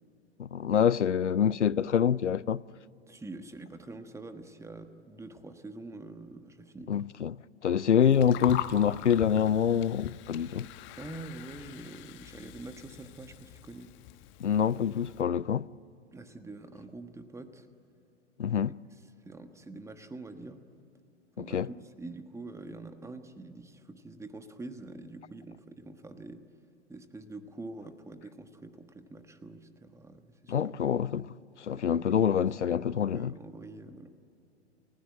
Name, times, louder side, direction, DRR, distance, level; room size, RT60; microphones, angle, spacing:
voice 1, 0.4-2.6 6.9-7.4 7.6-10.7 14.4-15.7 18.4-18.8 21.4-21.7 30.5-31.3 31.7-33.3, left 8 dB, 90° left, 0.5 m, -26 dB
voice 2, 3.1-7.0 11.0-13.9 16.1-17.7 19.2-20.6 21.4-21.6 22.0-26.4 26.9-30.7 31.2-31.3 31.7-34.1, right 2 dB, 10° right, 1.3 m, -45 dB
Gurgling, 8.0-15.2, left 12 dB, 35° left, 1.2 m, -42 dB
29.5 x 16.0 x 9.1 m
figure-of-eight pair, 100°, 34 cm